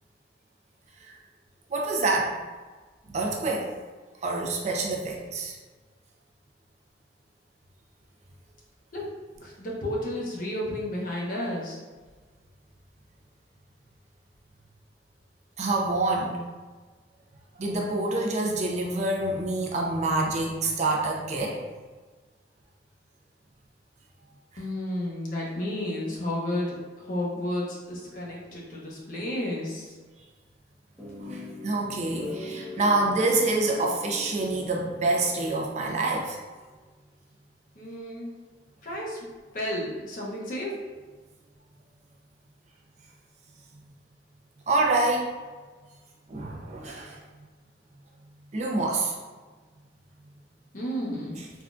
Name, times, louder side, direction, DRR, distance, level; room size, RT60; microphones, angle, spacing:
voice 1, 1.7-2.4 3.1-3.7 4.2-5.6 15.6-16.4 17.6-21.6 31.3-36.4 44.7-45.3 46.3-47.2 48.5-49.1, right 2 dB, 40° right, -1 dB, 0.4 m, -26 dB
voice 2, 9.4-11.8 24.6-26.7 27.0-29.9 37.8-38.3 38.8-39.2 39.5-40.7 50.7-51.4, left 1 dB, 50° left, -4 dB, 0.7 m, -32 dB
sound 1, 31.0-36.1, left 2 dB, 5° left, 0.7 m, -41 dB
3.5 x 2.2 x 2.5 m, 1.4 s
head